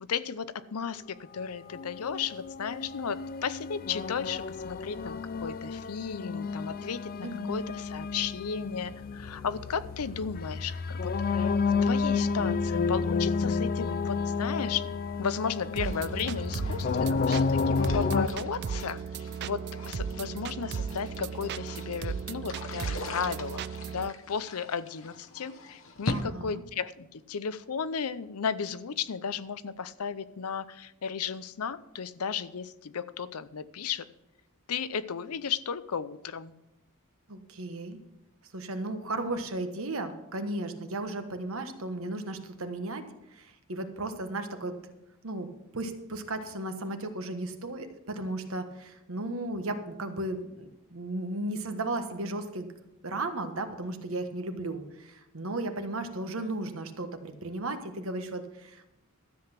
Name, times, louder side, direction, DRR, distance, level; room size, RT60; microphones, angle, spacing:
voice 1, 0.0-11.5 11.8-14.9 15.2-19.0 19.4-23.6 23.9-34.1 34.7-36.5, left 6 dB, 85° left, 15 dB, 0.6 m, -34 dB
sound 1, 1.7-18.3, left 4 dB, 40° left, 0.4 m, -31 dB
voice 2, 7.2-7.7 26.1-26.6 37.3-38.0 38.5-43.0 43.3-44.8 45.2-45.5 45.7-52.7 53.0-58.9, right 2 dB, 65° right, 7 dB, 1.3 m, -35 dB
sound 2, 15.8-26.2, left 2 dB, 65° left, 1.1 m, -42 dB
sound 3, 15.8-24.1, right 6 dB, 50° right, 0.3 m, -36 dB
13.0 x 7.8 x 5.9 m, 0.89 s
head